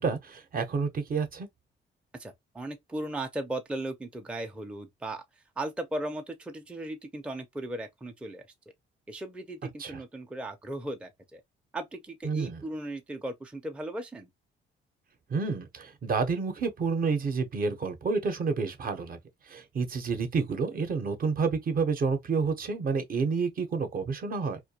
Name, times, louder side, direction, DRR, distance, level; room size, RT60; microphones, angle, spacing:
voice 1, 0.0-1.5 9.8-10.0 12.2-12.6 15.3-19.2 19.5-24.6, right 4 dB, 45° right, 0.6 m, -29 dB
voice 2, 2.1-5.2 5.6-8.4 9.1-11.4 11.7-14.3, right 1 dB, 5° right, 0.4 m, -37 dB
2.2 x 2.2 x 2.7 m
cardioid pair, 90°, 20 cm